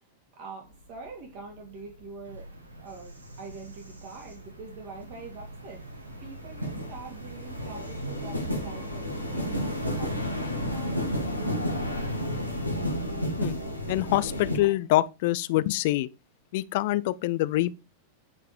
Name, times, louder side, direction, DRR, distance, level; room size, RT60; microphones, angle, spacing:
voice 1, 0.4-2.4 2.8-5.8 6.2-11.1, right 4 dB, 45° right, 3.1 m, -44 dB
sound 1, 0.6-1.1 1.5-14.6, equal, 90° left, 1.7 m, -32 dB
Bird vocalization bird call bird song, 2.2-9.9, right 2 dB, 80° right, 1.7 m, -45 dB
voice 2, 13.9-16.1 16.5-17.7, left 16 dB, 50° left, 0.5 m, -25 dB
9.5 x 4.8 x 5.2 m
figure-of-eight pair, 90°, 0 cm